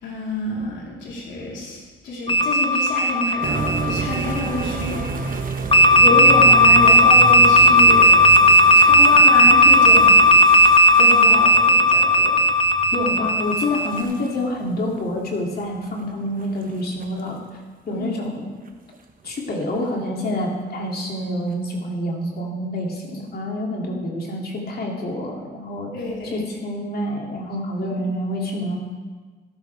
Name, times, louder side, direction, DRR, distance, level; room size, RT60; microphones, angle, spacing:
voice 1, 0.0-5.4 6.0-8.2 8.7-10.7 11.0-12.4 17.9-18.2 25.9-26.4 27.9-28.0, left 2 dB, 70° left, -4 dB, 4.1 m, -28 dB
sound 1, 2.3-4.8 5.7-14.0, equal, 25° left, 0.9 m, -14 dB
sound 2, 3.4-17.1 18.0-18.1 18.6-19.3 19.6-19.7 21.5-21.6, right 5 dB, 45° right, 1.2 m, -31 dB
voice 2, 12.9-17.6 17.9-18.5 19.2-25.9 26.3-28.8, left 1 dB, 50° left, -1 dB, 2.9 m, -27 dB
13.5 x 12.0 x 3.6 m, 1.4 s
cardioid pair, 90°, 20 cm